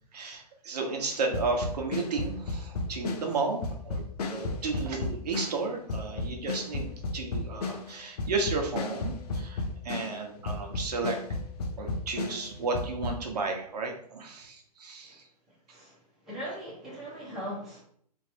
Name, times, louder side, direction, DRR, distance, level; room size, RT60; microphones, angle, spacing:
voice 1, 0.1-11.2 11.8-15.2, right 4 dB, 75° right, 2 dB, 1.2 m, -33 dB
sound 1, 1.3-10.2 10.5-13.2, left 3 dB, 70° left, 0.8 m, -34 dB
voice 2, 16.2-17.8, equal, ahead, -10 dB, 1.3 m, -39 dB
3.2 x 3.0 x 4.5 m, 0.63 s
hypercardioid pair, 160°, 21 cm